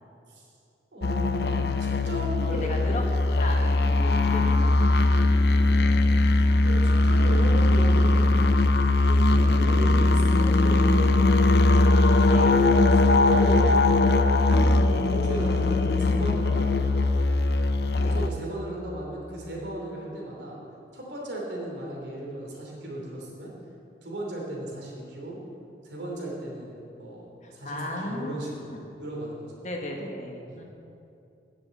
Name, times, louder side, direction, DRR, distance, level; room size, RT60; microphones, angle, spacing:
voice 1, 0.9-2.9 3.3-3.4 6.6-8.5 9.0-11.4 12.8-14.0 14.5-16.7 18.0-20.6 20.9-23.5 24.0-25.4 25.8-28.5 29.0-29.5 30.5-30.6, right 1 dB, 75° right, -2 dB, 2.9 m, -36 dB
drone key-d, 1.0-18.3, left 2 dB, 60° left, 0.5 m, -20 dB
voice 2, 2.6-3.0 3.3-4.7 5.0-5.2 9.5-9.7 12.3-12.8 18.0-18.3 27.4-28.8 29.6-30.6, left 1 dB, 40° left, 1 dB, 1.4 m, -36 dB
10.5 x 6.8 x 8.3 m, 2.7 s
head